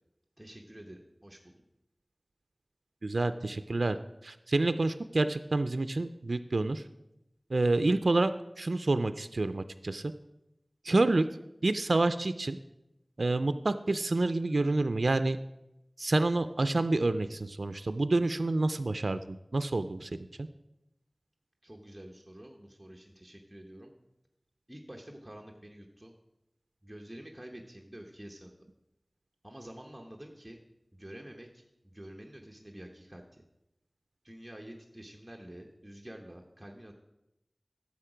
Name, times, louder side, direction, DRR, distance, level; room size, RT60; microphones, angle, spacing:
voice 1, 0.4-1.6 21.6-23.9 24.7-26.1 26.8-28.6 29.4-30.6 30.9-33.4 34.2-36.9, right 1 dB, 15° right, 1 dB, 0.9 m, -48 dB
voice 2, 3.0-4.0 4.2-6.8 7.5-8.3 8.6-10.1 10.8-11.3 11.6-12.6 13.2-15.4 16.0-20.1 20.4-20.5, right 2 dB, 85° right, 11 dB, 0.3 m, -28 dB
10.0 x 7.1 x 4.9 m, 0.90 s
wide cardioid pair, 50°, 0 cm